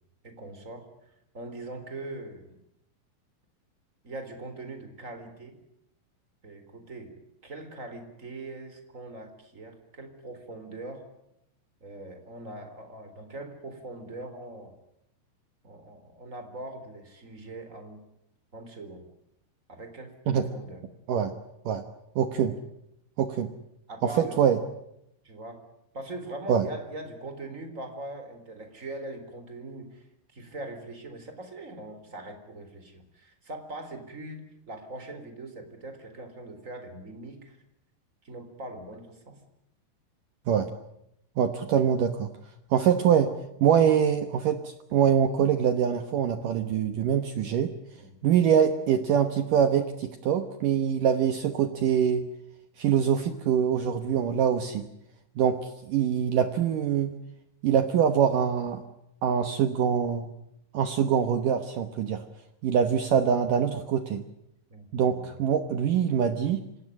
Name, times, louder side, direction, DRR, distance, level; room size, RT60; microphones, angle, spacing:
voice 1, 0.2-0.8 1.3-2.4 4.0-5.6 6.4-7.1 7.4-11.0 11.8-14.7 15.6-18.0 18.5-19.0 19.7-20.8 23.9-24.4 25.2-25.6 25.9-30.0 30.3-37.6 38.2-39.4 48.0-48.1 64.7-65.4, right 2 dB, 20° right, 7 dB, 3.4 m, -41 dB
voice 2, 22.2-22.6 23.2-23.5 24.2-24.6 26.5-26.7 40.5-40.7 41.4-42.3 42.7-43.3 43.6-47.7 48.2-52.3 52.8-54.9 55.4-57.1 57.6-58.8 59.2-60.3 60.7-62.2 62.6-64.2 64.9-66.6, right 8 dB, 90° right, 8 dB, 1.8 m, -24 dB
26.5 x 18.0 x 10.0 m, 0.81 s
omnidirectional pair, 5.7 m